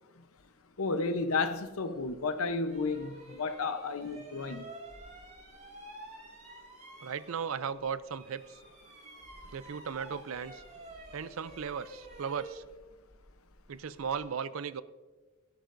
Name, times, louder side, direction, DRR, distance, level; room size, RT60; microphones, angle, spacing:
voice 1, 0.8-4.7, left 3 dB, 80° left, 0.8 m, -32 dB
sound 1, 2.0-2.1 2.6-7.8 8.1-14.2, right 2 dB, 35° right, 3.9 m, -50 dB
voice 2, 7.0-8.6 9.5-10.6 11.1-12.6 13.7-14.8, right 6 dB, 70° right, 0.5 m, -36 dB
17.0 x 11.5 x 2.6 m
head